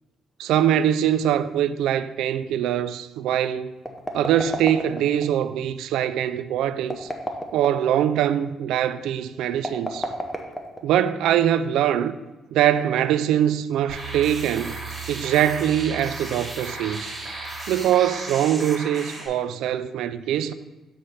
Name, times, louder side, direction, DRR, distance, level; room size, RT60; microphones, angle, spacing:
voice 1, 0.4-3.7 4.1-7.1 7.5-10.1 10.8-12.2 12.5-14.8 15.1-17.1 17.7-20.5, right 10 dB, 85° right, 0.3 m, -23 dB
sound 1, 3.8-5.3 6.8-7.9 9.6-11.1, equal, 10° left, 0.9 m, -31 dB
sound 2, 13.9-19.3, right 3 dB, 25° right, 1.8 m, -35 dB
7.7 x 3.3 x 5.6 m
cardioid pair, 90°, 0 cm